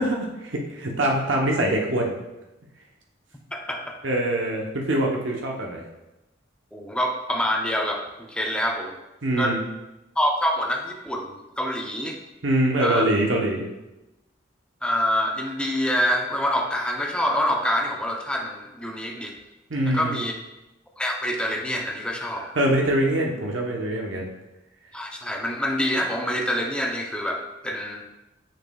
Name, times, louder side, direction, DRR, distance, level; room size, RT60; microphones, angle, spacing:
voice 1, 0.0-2.2 4.0-5.8 9.2-9.6 12.4-13.7 19.7-20.2 22.6-24.3, right 1 dB, 90° right, -1 dB, 0.9 m, -24 dB
voice 2, 3.5-3.9 6.7-8.9 9.4-9.6 10.2-12.2 12.8-13.0 14.8-19.4 19.8-20.3 21.0-22.5 24.9-28.0, equal, 5° left, 1 dB, 0.6 m, -26 dB
6.4 x 6.3 x 2.3 m, 0.99 s
head